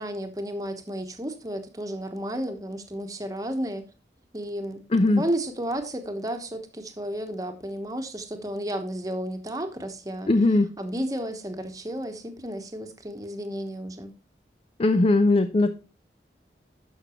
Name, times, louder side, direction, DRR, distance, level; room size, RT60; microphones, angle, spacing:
voice 1, 0.0-3.8 4.3-4.8 5.1-10.3 10.8-14.1, right 1 dB, 20° right, 1.0 m, -32 dB
voice 2, 4.9-5.2 10.3-10.7 14.8-15.8, left 2 dB, 30° left, 0.4 m, -20 dB
12.0 x 5.9 x 3.0 m
head